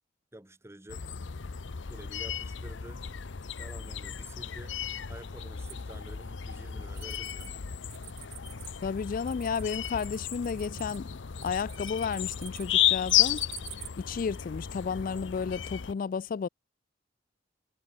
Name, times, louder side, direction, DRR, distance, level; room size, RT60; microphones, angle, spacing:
voice 1, 0.3-1.0 1.9-3.1 3.6-4.8 5.1-7.6, right 1 dB, 15° right, 1.2 m, -49 dB
sound 1, 0.9-15.9, left 11 dB, 80° left, 0.7 m, -33 dB
sound 2, 5.7-7.5 7.8-13.9, right 13 dB, 40° right, 0.8 m, -48 dB
voice 2, 8.8-11.1 11.4-13.4 14.0-16.5, left 6 dB, 50° left, 0.3 m, -32 dB
head